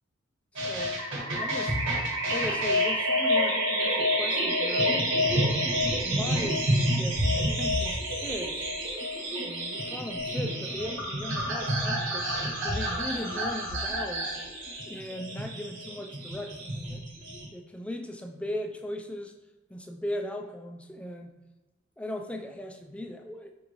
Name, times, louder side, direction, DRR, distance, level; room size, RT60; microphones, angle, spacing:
voice 1, 0.5-1.0 1.4-1.8 2.3-5.1 6.0-8.7 9.4-12.3 12.6-14.4 14.9-17.0 17.5-19.3 19.7-21.4 22.0-23.5, left 1 dB, 5° left, 4 dB, 0.3 m, -38 dB
sound 1, 0.6-17.5, equal, 70° right, 1.2 m, -28 dB
5.3 x 2.5 x 2.9 m, 1.2 s
head